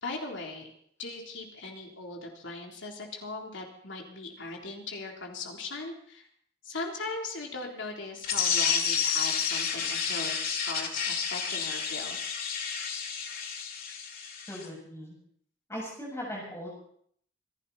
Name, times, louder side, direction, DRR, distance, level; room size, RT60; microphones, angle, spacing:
voice 1, 0.0-0.7 1.0-6.3 6.6-12.3, left 3 dB, 80° left, 0 dB, 3.6 m, -39 dB
sound 1, 8.2-14.7, left 6 dB, 50° left, 2.2 m, -30 dB
voice 2, 14.5-15.2 15.7-16.7, equal, 15° left, -3 dB, 7.4 m, -39 dB
26.5 x 11.5 x 4.3 m, 0.63 s
head